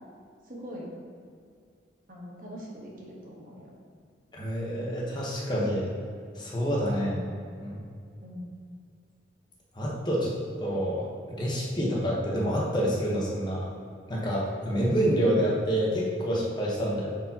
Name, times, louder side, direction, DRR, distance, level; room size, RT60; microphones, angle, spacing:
voice 1, 0.4-0.9 2.1-3.7 7.0-7.2 8.2-8.4, equal, 50° right, -3 dB, 1.3 m, -42 dB
voice 2, 4.3-5.9 6.3-7.1 7.6-7.8 9.7-10.3 10.6-13.7 14.1-17.1, equal, 25° left, -4 dB, 1.1 m, -27 dB
9.2 x 4.5 x 2.9 m, 2.3 s
head